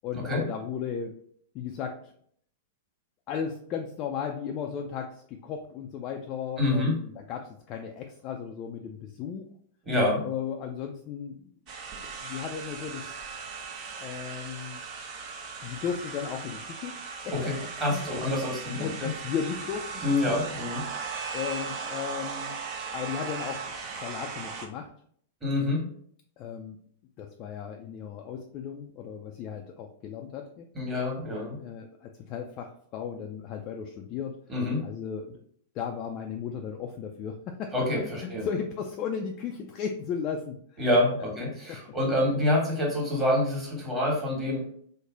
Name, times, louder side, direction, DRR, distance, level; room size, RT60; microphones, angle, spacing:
voice 1, 0.0-1.1 1.5-2.1 3.3-9.5 10.2-11.4 12.2-13.0 14.0-14.8 15.6-16.9 17.2-17.3 17.9-18.3 18.8-19.9 21.3-22.5 22.9-23.7 24.0-24.9 26.4-26.8 27.2-30.7 31.6-34.4 34.8-35.4 35.7-40.8 41.2-41.3 41.7-41.8, left 7 dB, 35° left, 3 dB, 0.3 m, -35 dB
voice 2, 6.6-6.9 9.9-10.2 17.3-19.1 20.0-20.8 25.4-25.8 30.7-31.6 34.5-34.8 37.7-38.5 40.8-44.7, left 1 dB, 20° right, -2 dB, 1.4 m, -27 dB
sound 1, 11.7-24.7, right 5 dB, 40° right, 0.6 m, -38 dB
3.1 x 2.1 x 3.7 m, 0.62 s
figure-of-eight pair, 100°, 0 cm